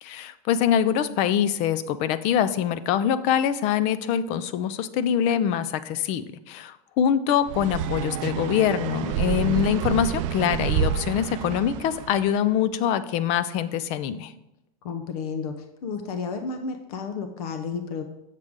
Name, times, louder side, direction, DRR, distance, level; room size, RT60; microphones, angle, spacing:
voice 1, 0.0-14.3, left 9 dB, 35° left, 14 dB, 0.4 m, -24 dB
sound 1, 7.5-12.4, right 9 dB, 55° right, 0.5 m, -28 dB
voice 2, 14.8-18.0, left 5 dB, 70° left, 7 dB, 0.8 m, -32 dB
7.8 x 6.5 x 3.6 m, 0.89 s
supercardioid pair, 155°, 20 cm